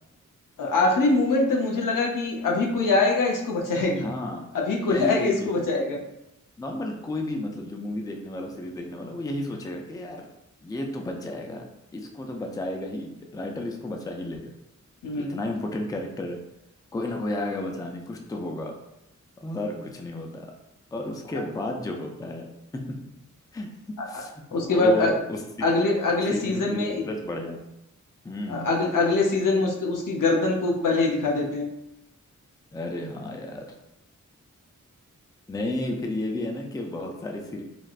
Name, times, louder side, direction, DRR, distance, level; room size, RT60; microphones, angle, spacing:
voice 1, 0.6-4.1 4.5-6.0 15.0-15.4 24.5-25.1 25.6-27.0 28.5-31.7, left 3 dB, 85° left, 0 dB, 0.6 m, -23 dB
voice 2, 4.0-4.5 4.9-5.7 6.6-10.3 10.6-11.7 11.9-14.5 15.1-16.4 16.9-18.7 19.4-20.5 20.9-23.0 23.5-23.7 24.1-25.7 26.3-27.6 28.2-28.7 32.7-33.7 35.5-37.6, left 1 dB, 10° left, 2 dB, 0.3 m, -32 dB
3.3 x 2.4 x 2.4 m, 0.87 s
wide cardioid pair, 95°, 31 cm